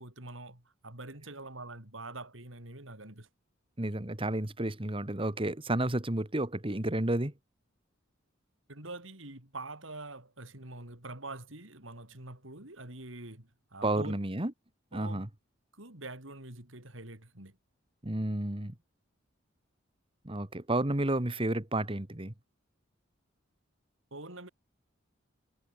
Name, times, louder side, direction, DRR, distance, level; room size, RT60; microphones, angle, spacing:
voice 1, 0.0-3.3 8.7-14.1 14.9-15.3 15.7-17.6 24.1-24.5, right 2 dB, 70° right, 4.9 m, -45 dB
voice 2, 3.8-7.3 13.8-14.5 14.9-15.3 18.0-18.7 20.2-22.3, right 1 dB, 25° right, 1.7 m, -31 dB
head